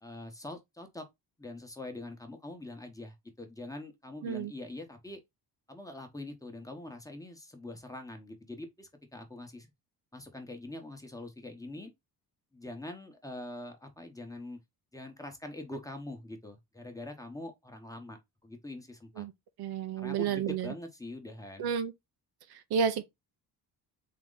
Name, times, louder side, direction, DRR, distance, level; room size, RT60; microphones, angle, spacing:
voice 1, 0.0-1.0 1.4-5.2 5.7-9.7 10.1-11.9 12.5-14.6 14.9-19.2 20.0-21.7, left 1 dB, 10° left, 1.0 m, -44 dB
voice 2, 19.6-20.7 21.6-21.9 22.7-23.0, right 7 dB, 70° right, 0.7 m, -30 dB
3.8 x 2.9 x 3.8 m
cardioid pair, 110°, 39 cm